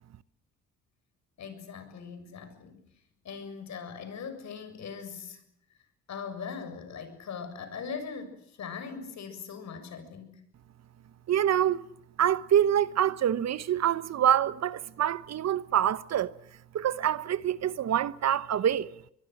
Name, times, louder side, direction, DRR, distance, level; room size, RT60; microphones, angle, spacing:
voice 1, 1.4-2.8 3.2-5.4 6.1-10.4, left 6 dB, 65° left, 7.1 m, -40 dB
voice 2, 11.3-11.9 12.2-16.3 16.7-18.9, right 10 dB, 60° right, 1.1 m, -26 dB
23.5 x 22.5 x 7.9 m
cardioid pair, 90°, 30 cm